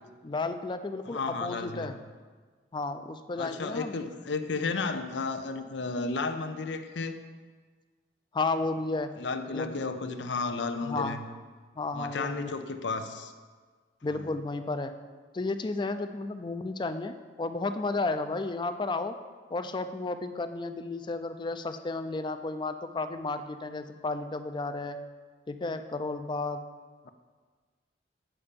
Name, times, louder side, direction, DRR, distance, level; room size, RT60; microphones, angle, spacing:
voice 1, 0.2-2.0 2.7-4.0 8.3-9.1 9.5-9.8 10.8-11.2 11.8-12.5 14.0-14.9 15.3-19.1 19.5-25.0 25.5-26.6, left 3 dB, 25° left, 9 dB, 0.4 m, -33 dB
voice 2, 1.1-1.9 3.4-7.2 9.2-11.2 11.9-13.3 14.1-14.3 27.0-27.1, left 4 dB, 85° left, 9 dB, 0.6 m, -33 dB
8.6 x 5.5 x 5.1 m, 1.5 s
head